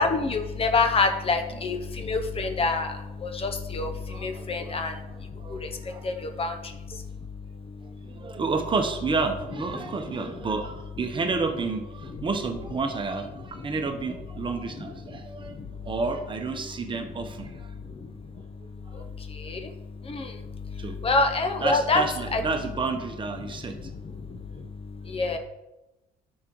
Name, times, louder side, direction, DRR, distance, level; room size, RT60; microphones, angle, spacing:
voice 1, 0.0-7.1 7.6-8.1 9.8-10.3 13.5-13.7 14.7-15.7 17.9-18.1 18.9-22.0 22.3-22.4 23.4-25.4, left 3 dB, 35° left, 6 dB, 0.7 m, -28 dB
voice 2, 4.1-4.8 5.1-6.4 8.0-15.6 15.8-17.7 20.8-21.0 21.6-23.8, right 4 dB, 30° right, 5 dB, 0.9 m, -30 dB
10.0 x 6.5 x 3.0 m, 1.0 s
cardioid pair, 110°, 17 cm